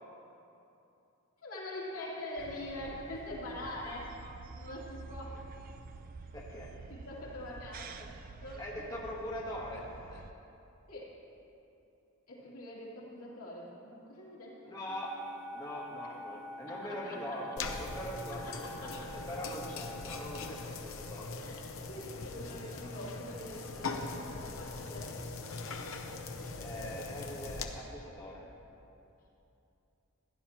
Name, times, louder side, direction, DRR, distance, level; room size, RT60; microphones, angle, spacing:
voice 1, 1.4-4.2 4.5-5.4 6.9-8.1 8.4-8.6 10.9-11.1 12.3-14.7 16.7-17.4 18.3-18.9 21.3-25.2, left 1 dB, 85° left, -6 dB, 2.7 m, -44 dB
sound 1, 2.4-10.3, right 3 dB, 40° right, 0.4 m, -48 dB
voice 2, 6.3-6.7 8.6-9.8 10.1-10.2 14.6-15.1 15.5-18.5 18.8-21.4 26.5-28.4, equal, 20° left, -5 dB, 1.2 m, -42 dB
sound 2, 14.9-20.6, left 1 dB, ahead, 1.3 m, -47 dB
sound 3, 17.6-27.6, left 3 dB, 65° left, 0.8 m, -41 dB
16.0 x 11.0 x 3.0 m, 2.8 s
head